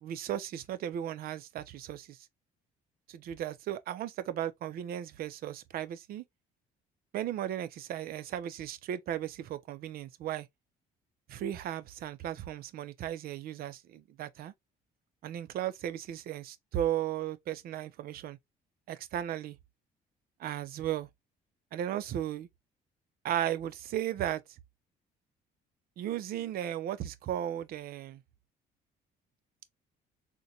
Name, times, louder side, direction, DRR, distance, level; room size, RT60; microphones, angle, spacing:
voice 1, 0.0-2.2 3.1-6.2 7.1-10.5 11.3-14.5 15.2-18.4 18.9-19.6 20.4-21.1 21.7-22.5 23.2-24.4 26.0-28.2, right 11 dB, 60° right, 0.5 m, -35 dB
3.9 x 2.2 x 2.7 m
cardioid pair, 110°, 17 cm